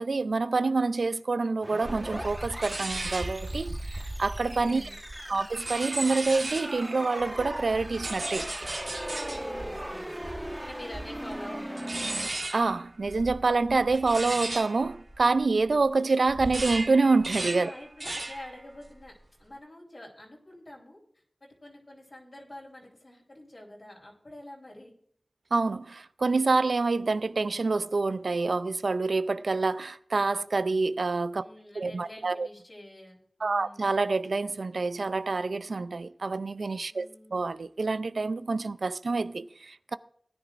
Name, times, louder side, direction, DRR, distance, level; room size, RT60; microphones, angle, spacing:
voice 1, 0.0-4.9 5.3-8.5 12.5-17.7 25.5-31.5 31.8-32.5 33.4-40.0, right 3 dB, 85° right, 0.4 m, -27 dB
sound 1, 1.6-12.3, equal, 10° right, 1.3 m, -39 dB
sound 2, 1.8-6.8 7.2-15.9 16.2-18.5 18.8-19.2, right 2 dB, 60° right, 1.7 m, -36 dB
voice 2, 4.4-5.0 9.4-10.1 10.6-12.0 17.4-24.9 31.4-33.9 36.9-37.4, left 1 dB, 55° left, 3.7 m, -47 dB
18.5 x 10.0 x 2.5 m
cardioid pair, 40°, 0 cm